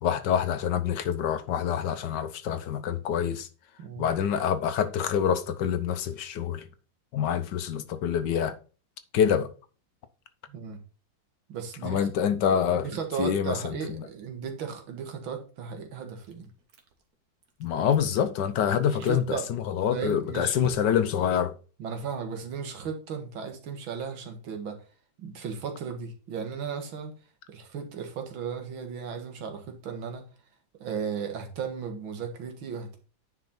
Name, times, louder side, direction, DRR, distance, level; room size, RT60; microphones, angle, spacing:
voice 1, 0.0-3.5 4.0-6.7 7.1-8.5 9.1-9.5 11.8-12.9 13.2-14.1 17.6-21.6, left 8 dB, 65° left, 1.3 m, -26 dB
voice 2, 10.5-10.8 11.5-12.1 12.7-16.5 18.8-19.5 19.9-20.6 21.8-24.8 25.2-27.1 27.5-30.3 30.8-33.0, right 6 dB, 85° right, 2.2 m, -35 dB
Chewing mastication, 16.2-17.1 17.4-18.3 18.8-19.2 19.8-21.2, right 6 dB, 55° right, 1.6 m, -48 dB
9.9 x 4.5 x 4.1 m
omnidirectional pair, 2.1 m